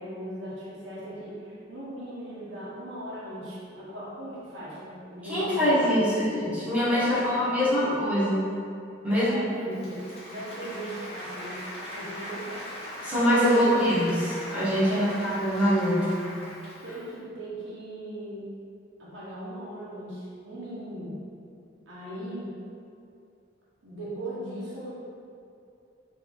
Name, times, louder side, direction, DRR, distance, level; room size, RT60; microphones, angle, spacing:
voice 1, 0.0-6.0 7.0-7.9 9.0-10.0 10.3-12.7 13.5-13.9 14.9-15.4 16.8-18.5 19.0-21.2 21.9-22.6 23.8-24.9, right 1 dB, 70° right, -8 dB, 0.9 m, -38 dB
voice 2, 5.2-8.5 9.0-9.4 9.7-9.8 13.0-14.2 14.5-16.2, equal, 10° right, -11 dB, 1.2 m, -24 dB
Applause, 9.6-17.1, equal, 35° left, 0.9 m, -40 dB
3.4 x 2.9 x 3.6 m, 2.5 s
head